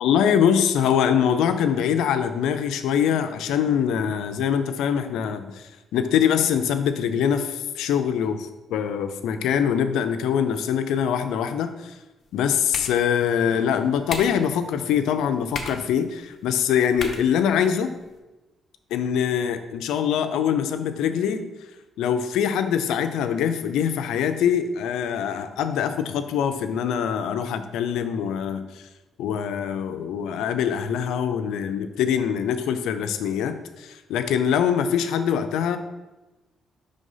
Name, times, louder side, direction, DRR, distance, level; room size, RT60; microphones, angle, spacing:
voice 1, 0.0-11.9 12.3-18.0 18.9-21.5 22.0-28.8 29.2-35.8, left 8 dB, 85° left, 9 dB, 0.4 m, -23 dB
sound 1, 12.2-18.2, left 4 dB, 50° left, 0.9 m, -39 dB
5.3 x 3.4 x 5.5 m, 1.1 s
cardioid pair, 90°, 0 cm